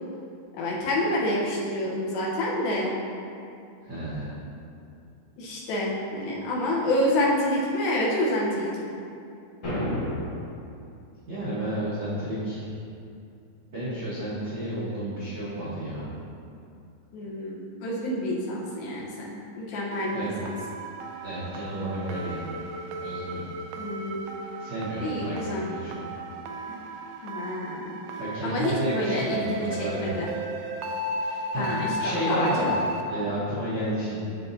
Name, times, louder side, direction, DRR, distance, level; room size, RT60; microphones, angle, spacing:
voice 1, 0.5-2.9 5.4-8.7 17.1-20.5 23.8-24.2 25.0-25.7 27.2-28.0 28.4-30.3 31.6-32.8, left 1 dB, 80° left, -5 dB, 2.8 m, -28 dB
voice 2, 3.8-4.4 11.3-12.7 13.7-16.1 20.1-20.3 21.2-22.4 23.0-23.4 24.6-26.0 28.2-30.1 31.2-32.6 33.0-34.3, right 1 dB, 70° right, -12 dB, 1.1 m, -31 dB
sound 1, 9.6-10.7, equal, 50° left, 2.0 m, -30 dB
sound 2, 19.9-33.0, right 1 dB, 85° right, 2.5 m, -35 dB
11.0 x 4.2 x 2.7 m, 2.6 s
omnidirectional pair, 4.3 m